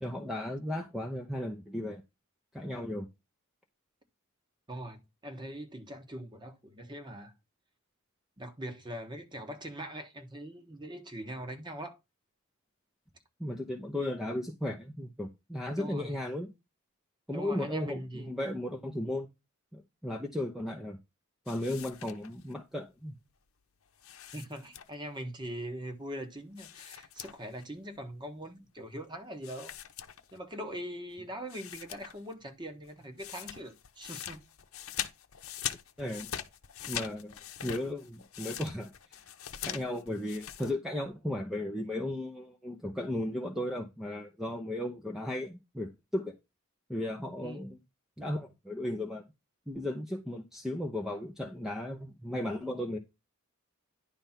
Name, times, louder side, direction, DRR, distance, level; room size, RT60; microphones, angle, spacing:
voice 1, 0.0-2.0 2.5-3.1 13.4-16.5 17.3-19.3 19.7-21.0 21.5-23.1 36.0-36.3 36.9-37.3 37.6-38.9 39.6-46.4 46.9-47.8 48.2-49.2 49.7-53.0, left 1 dB, ahead, 0.7 m, -35 dB
voice 2, 4.7-7.3 8.4-12.0 15.8-16.2 17.3-18.3 24.3-29.7 30.3-34.4 47.4-47.7, equal, 20° right, 1.3 m, -42 dB
sound 1, 21.5-22.5 24.0-25.2 26.6-27.6 27.9-28.0 29.4-30.6 31.1-31.2 31.5-32.3 32.6-40.7, left 10 dB, 70° left, 0.8 m, -42 dB
10.5 x 3.5 x 5.7 m
head